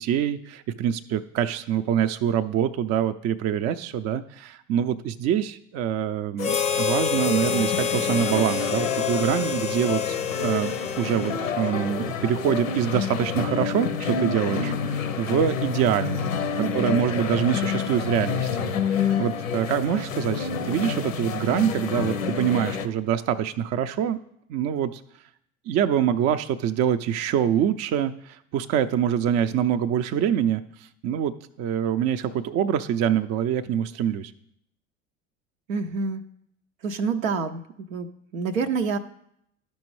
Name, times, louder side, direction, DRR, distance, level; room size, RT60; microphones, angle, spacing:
voice 1, 0.0-24.2 24.5-25.0 25.7-31.3 31.6-34.3, right 9 dB, 40° right, 8 dB, 0.4 m, -25 dB
sound 1, 6.4-22.9, left 6 dB, 85° left, 0.6 m, -28 dB
Harmonica, 6.4-11.9, left 7 dB, 15° left, 0.5 m, -28 dB
voice 2, 16.6-17.0 35.7-36.2 36.8-37.6 37.9-39.0, right 4 dB, 90° right, 6 dB, 0.5 m, -27 dB
11.5 x 5.3 x 3.1 m, 0.74 s
hypercardioid pair, 70°, 39 cm